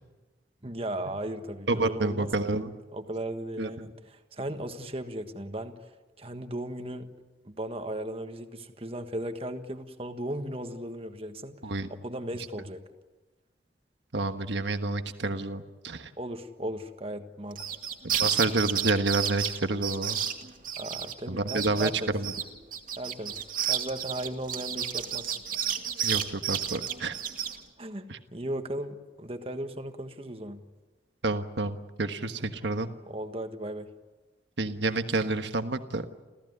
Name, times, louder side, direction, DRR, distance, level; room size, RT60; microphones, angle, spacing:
voice 1, 0.6-2.3 2.9-5.7 6.2-7.1 7.4-11.5 11.9-12.8 16.2-17.6 20.8-22.1 23.0-25.4 27.8-30.7 33.1-33.9, right 1 dB, 30° right, 7 dB, 1.5 m, -36 dB
voice 2, 1.7-2.7 3.6-3.9 11.6-11.9 14.1-16.1 18.0-20.2 21.3-22.3 26.0-27.2 28.1-28.2 31.2-32.9 34.6-36.1, right 2 dB, 80° right, 8 dB, 1.4 m, -29 dB
sound 1, 17.5-21.1 21.5-21.9 22.2-27.6, right 9 dB, 50° right, 2.3 m, -31 dB
30.0 x 15.0 x 9.7 m, 1.2 s
head